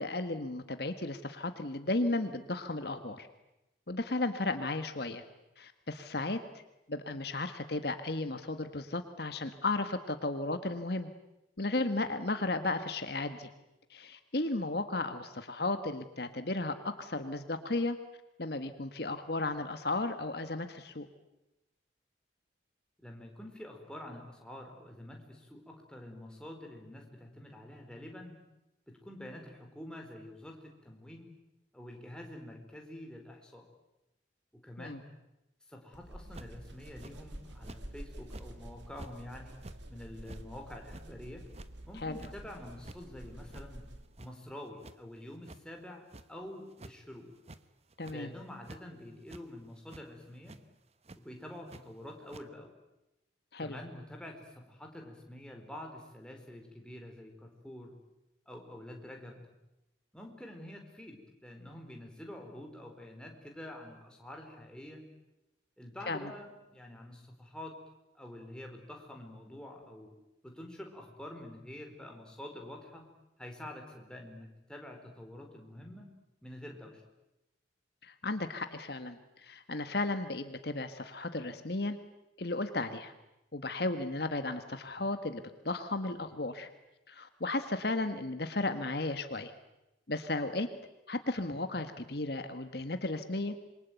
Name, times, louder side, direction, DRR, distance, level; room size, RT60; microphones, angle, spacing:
voice 1, 0.0-3.3 3.9-5.2 5.6-6.4 6.9-11.1 11.6-13.5 13.9-18.0 18.4-21.1 34.8-35.0 42.0-42.2 48.0-48.3 53.5-53.8 66.1-66.3 78.0-82.0 82.4-83.1 83.5-86.7 87.1-89.5 90.1-90.7 91.1-93.5, left 2 dB, 55° left, 8 dB, 1.5 m, -34 dB
voice 2, 23.0-28.4 28.9-31.3 31.7-33.6 34.5-35.0 35.7-39.6 39.9-41.4 41.9-43.9 44.2-47.3 48.1-50.6 51.2-52.7 53.6-57.9 58.5-59.4 60.1-65.0 65.8-67.7 68.1-70.1 70.4-73.0 73.4-76.1 76.4-77.0, left 1 dB, 5° left, 1 dB, 4.4 m, -47 dB
sound 1, 35.9-44.2, right 1 dB, 70° right, 3.1 m, -49 dB
sound 2, 36.3-36.6 37.0-37.1 37.6-37.8 38.2-38.5 39.0-39.1 39.5-39.8 40.2-40.4 40.9-41.1 41.5-41.7 42.2-42.3 42.7-43.0 43.5-43.6 44.0-44.5 44.8-45.0 45.4-45.6 46.1-46.2 46.7-46.9 47.4-47.6 47.9-48.2 48.6-48.8 49.3-49.4 49.9-50.1 50.5-50.6 51.0-51.2 51.7-51.8 52.3-52.4, right 2 dB, 35° right, 1.1 m, -49 dB
27.0 x 23.5 x 9.3 m, 0.93 s
head